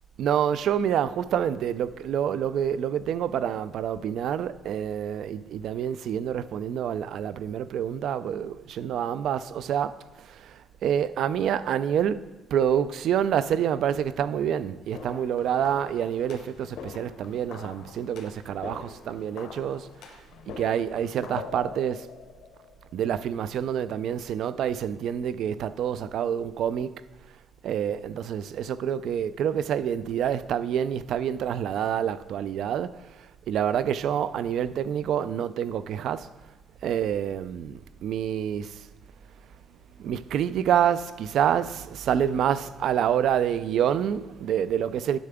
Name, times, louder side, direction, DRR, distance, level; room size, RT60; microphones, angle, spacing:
voice 1, 0.2-12.2 12.5-22.1 22.9-26.9 27.6-36.3 36.8-38.9 40.0-45.2, right 9 dB, 60° right, 0.3 m, -27 dB
sound 1, 14.9-23.1, left 6 dB, 75° left, 0.7 m, -44 dB
9.9 x 6.7 x 3.6 m
cardioid pair, 175°, 0 cm